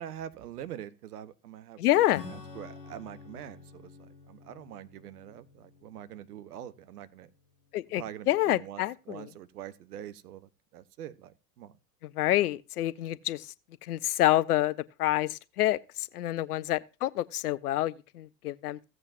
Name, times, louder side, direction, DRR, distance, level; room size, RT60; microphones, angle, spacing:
voice 1, 0.0-7.3 8.0-11.7, right 11 dB, 70° right, 0.9 m, -44 dB
voice 2, 1.8-2.2 7.7-9.3 12.0-13.5 13.8-18.8, left 15 dB, 70° left, 0.6 m, -28 dB
Acoustic guitar / Strum, 2.1-8.1, left 5 dB, 90° left, 1.2 m, -49 dB
16.0 x 7.8 x 2.5 m
figure-of-eight pair, 80°, 47 cm